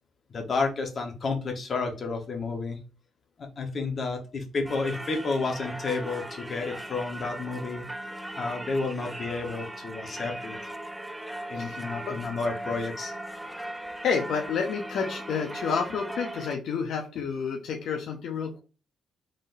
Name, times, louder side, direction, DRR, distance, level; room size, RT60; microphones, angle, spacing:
voice 1, 0.3-2.8 3.4-7.9 8.3-10.6 11.5-13.1, left 3 dB, 45° left, 3 dB, 1.2 m, -31 dB
Singing / Church bell, 4.6-16.6, right 1 dB, 5° right, 0.4 m, -38 dB
voice 2, 11.5-12.2 14.0-18.6, left 6 dB, 70° left, 2 dB, 0.7 m, -30 dB
3.9 x 3.7 x 2.6 m, 0.34 s
cardioid pair, 90°, 0 cm